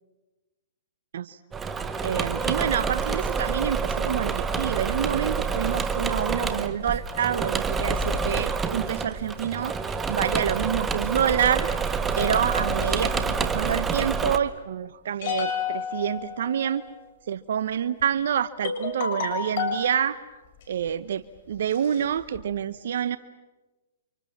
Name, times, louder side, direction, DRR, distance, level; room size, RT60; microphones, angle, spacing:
Engine / Mechanisms, 1.5-14.4, right 5 dB, 15° right, 1.5 m, -27 dB
voice 1, 2.0-11.7 12.2-16.8 17.3-20.2 20.7-23.2, right 9 dB, 65° right, 13 dB, 0.9 m, -27 dB
sound 1, 12.2-13.5 15.2-17.0 18.0-18.1 18.6-19.9 20.6-20.9 21.4-21.5 21.7-22.4, left 7 dB, 50° left, 6.7 m, -32 dB
30.0 x 26.5 x 7.3 m, 1.2 s
hypercardioid pair, 135°, 0 cm